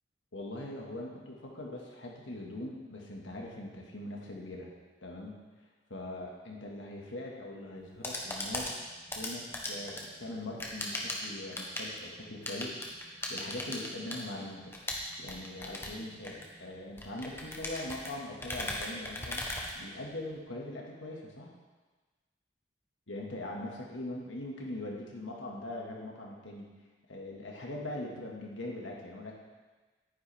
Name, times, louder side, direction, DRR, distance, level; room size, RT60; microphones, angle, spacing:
voice 1, 0.3-4.7 5.0-5.4 5.9-8.9 9.2-14.7 15.2-19.4 19.7-21.5 23.1-26.7 27.1-29.4, left 1 dB, 80° left, -1 dB, 1.8 m, -41 dB
sound 1, 7.8-20.4, left 1 dB, 10° left, 1.0 m, -39 dB
10.5 x 9.6 x 3.5 m, 1.3 s
head